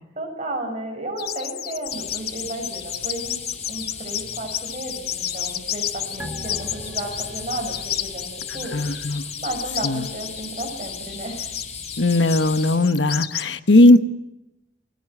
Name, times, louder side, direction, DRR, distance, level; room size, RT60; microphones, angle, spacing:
voice 1, 0.2-3.4 3.6-11.5, right 1 dB, 35° right, 2 dB, 6.9 m, -33 dB
sound 1, 1.2-13.5, left 11 dB, 55° left, 0.9 m, -31 dB
sound 2, 1.9-12.8, left 5 dB, 35° left, 5.4 m, -37 dB
sound 3, 6.2-9.1 9.4-9.5, equal, 10° right, 1.8 m, -40 dB
voice 2, 8.5-9.2 9.8-10.1 12.0-14.0, left 2 dB, 80° left, 10 dB, 1.2 m, -17 dB
29.0 x 21.0 x 7.9 m, 0.87 s
head